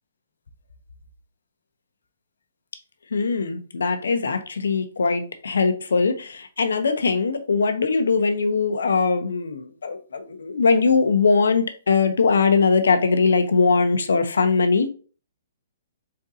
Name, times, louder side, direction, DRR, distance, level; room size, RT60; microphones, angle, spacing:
voice 1, 3.1-14.9, left 4 dB, 85° left, 0.8 m, -21 dB
4.4 x 3.8 x 2.7 m
hypercardioid pair, 145°, 0 cm